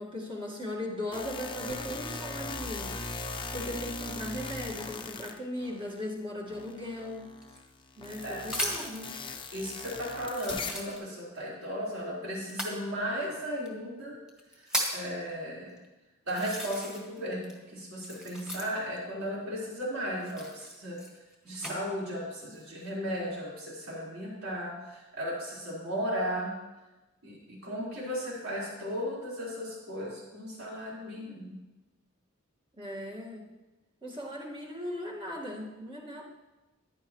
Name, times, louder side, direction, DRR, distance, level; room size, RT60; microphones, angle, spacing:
voice 1, 0.0-3.0 3.5-7.3 8.0-9.2 32.8-33.5 34.0-36.2, left 1 dB, 25° right, -3 dB, 2.0 m, -38 dB
sound 1, 1.1-6.1 6.5-10.9, left 3 dB, 25° left, 0.9 m, -39 dB
sound 2, 7.4-9.0 9.7-9.8 10.3-11.4 12.4-12.8 13.7-13.8 14.3-15.1 15.8-15.9 16.3-17.2 17.4-19.0 20.2-21.8 22.4-22.9, equal, 5° right, 1.9 m, -36 dB
voice 2, 9.5-14.1 14.9-15.7 16.3-21.0 21.4-26.5 27.2-31.5, equal, 75° right, -6 dB, 4.7 m, -35 dB
15.0 x 11.0 x 3.2 m, 1.1 s
head